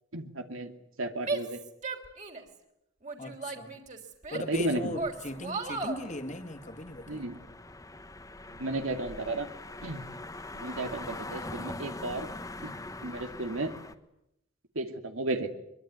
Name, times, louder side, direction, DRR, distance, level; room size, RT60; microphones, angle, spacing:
voice 1, 0.1-0.7 1.0-1.6 4.3-5.0 7.1-7.4 8.6-9.5 9.8-10.0 10.5-12.3 12.6-12.7 13.0-13.7 14.7-15.5, right 2 dB, 85° right, 6 dB, 2.5 m, -33 dB
Female speech woman speaking / Yell, 1.2-2.6 3.0-4.6 4.9-6.0, right 3 dB, 35° right, 3.5 m, -35 dB
voice 2, 3.2-3.8 4.3-7.3, left 1 dB, 35° left, 5 dB, 2.1 m, -38 dB
sound 1, 4.5-13.9, left 2 dB, 15° left, 1.3 m, -43 dB
23.5 x 23.5 x 9.6 m, 0.82 s
head